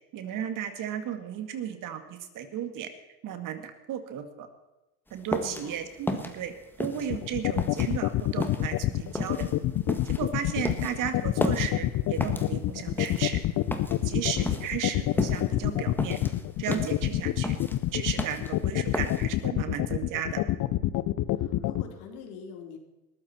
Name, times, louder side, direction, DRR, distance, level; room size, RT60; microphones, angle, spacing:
voice 1, 0.1-2.9 3.2-4.5 5.1-9.5 10.1-13.4 14.0-16.2 16.6-17.6 17.9-20.4, right 9 dB, 45° right, 8 dB, 2.2 m, -34 dB
sound 1, 5.1-19.5, left 1 dB, 5° left, 1.7 m, -35 dB
voice 2, 5.3-5.8 14.3-14.5 21.3-22.8, left 6 dB, 70° left, 2 dB, 4.0 m, -44 dB
sound 2, 7.1-21.8, left 15 dB, 40° left, 0.9 m, -26 dB
20.5 x 14.5 x 4.4 m, 1.0 s
supercardioid pair, 105°, 45 cm